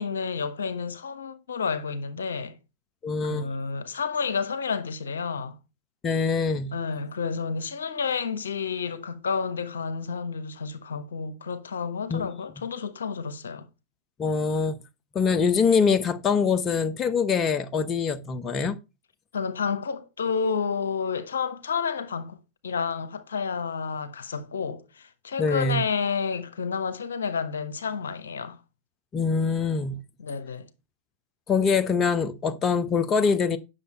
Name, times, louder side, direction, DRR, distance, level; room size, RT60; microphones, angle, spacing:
voice 1, 0.0-2.6 3.2-5.6 6.7-13.7 19.3-22.4 22.6-28.6 30.2-30.7, left 5 dB, 70° left, 1.1 m, -30 dB
voice 2, 3.0-3.6 6.0-6.7 12.1-12.3 14.2-14.8 15.1-18.8 25.4-25.8 29.1-30.0 31.5-33.6, left 5 dB, 25° left, 0.9 m, -24 dB
9.7 x 6.6 x 4.3 m
figure-of-eight pair, 90°, 0 cm